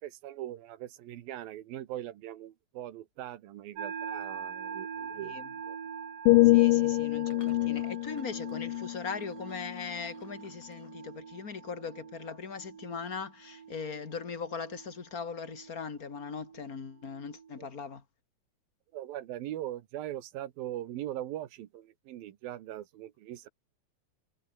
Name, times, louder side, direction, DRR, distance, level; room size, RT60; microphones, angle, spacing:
voice 1, 0.0-5.8 7.3-7.5 17.6-17.7 18.9-23.5, right 13 dB, 85° right, 3.2 m, -41 dB
sound 1, 3.8-17.7, right 7 dB, 70° right, 4.9 m, -44 dB
voice 2, 5.1-5.5 6.4-18.0, left 5 dB, 30° left, 2.1 m, -40 dB
sound 2, 6.3-10.2 10.7-10.9, left 19 dB, 80° left, 2.3 m, -26 dB
sound 3, 6.3-6.6 7.2-11.5 14.5-14.8, left 5 dB, 50° left, 5.0 m, -60 dB
omnidirectional pair, 4.1 m